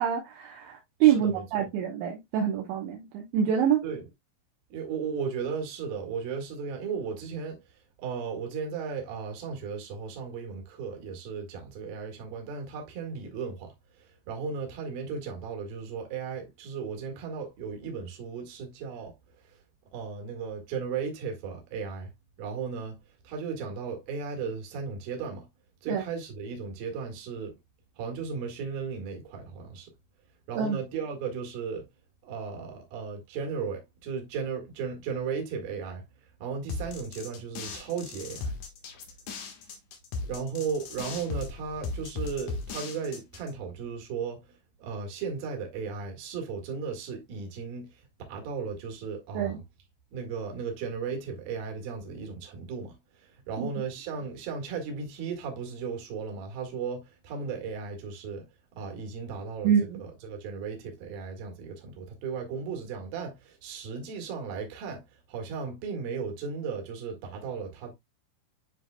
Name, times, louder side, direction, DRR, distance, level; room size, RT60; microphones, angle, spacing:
voice 1, 0.0-3.8 25.9-26.0 30.6-30.8 49.3-49.6 53.6-53.7 59.6-60.0, right 9 dB, 75° right, 3.1 m, -26 dB
voice 2, 1.0-1.7 3.8-4.0 4.7-7.6 8.0-19.2 19.4-19.6 19.9-22.1 22.4-23.0 23.2-25.5 25.8-27.5 28.0-29.9 30.5-31.9 32.2-36.1 36.4-38.6 40.2-44.5 44.8-49.6 50.1-58.5 58.7-59.7 60.0-65.0 65.3-67.9, right 5 dB, 55° right, 3.0 m, -35 dB
sound 1, 36.7-43.5, left 4 dB, 75° left, 1.8 m, -37 dB
10.5 x 4.7 x 2.2 m
omnidirectional pair, 5.8 m